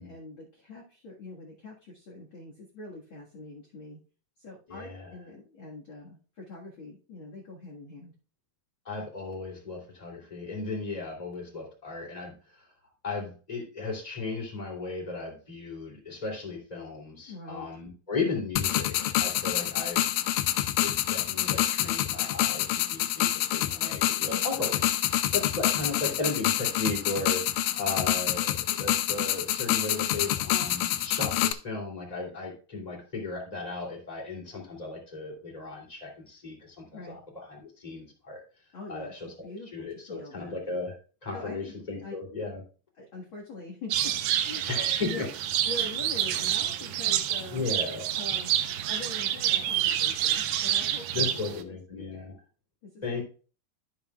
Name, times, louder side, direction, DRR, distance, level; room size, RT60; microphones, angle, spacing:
voice 1, 0.0-4.0 4.4-8.1 17.3-17.7 24.2-24.9 36.9-37.2 38.7-39.1 39.4-40.6 41.3-42.1 43.0-44.6 45.1-45.3 45.6-47.6 48.1-52.4 52.8-53.2, left 2 dB, 45° left, -3 dB, 1.9 m, -44 dB
voice 2, 4.7-5.1 8.8-12.7 13.0-20.0 20.8-24.7 25.3-38.4 38.9-39.3 39.7-41.0 41.2-42.6 44.7-45.3 47.5-48.1 51.1-52.3 53.0-53.2, left 3 dB, 10° left, 0 dB, 2.5 m, -35 dB
sound 1, 18.6-31.5, left 13 dB, 80° left, 2.1 m, -27 dB
sound 2, 43.9-51.6, right 11 dB, 75° right, 2.2 m, -28 dB
13.0 x 7.2 x 2.4 m, 0.37 s
omnidirectional pair, 4.3 m